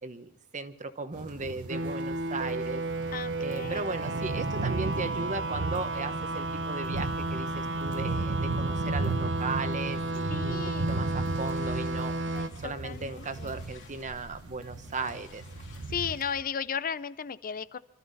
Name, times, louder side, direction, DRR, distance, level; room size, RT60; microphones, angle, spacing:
voice 1, 0.0-2.8 3.4-12.1 12.6-15.4, right 3 dB, 35° right, 10 dB, 1.1 m, -36 dB
sound 1, 1.1-16.2, right 3 dB, 80° right, 1.0 m, -36 dB
sound 2, 1.7-12.5, right 2 dB, 60° right, 0.8 m, -33 dB
voice 2, 3.1-3.9 10.3-10.9 12.6-13.6 15.9-17.8, left 7 dB, 40° left, 15 dB, 0.5 m, -35 dB
sound 3, 10.9-16.4, left 2 dB, 55° left, 2.8 m, -50 dB
26.5 x 13.0 x 4.1 m, 0.87 s
head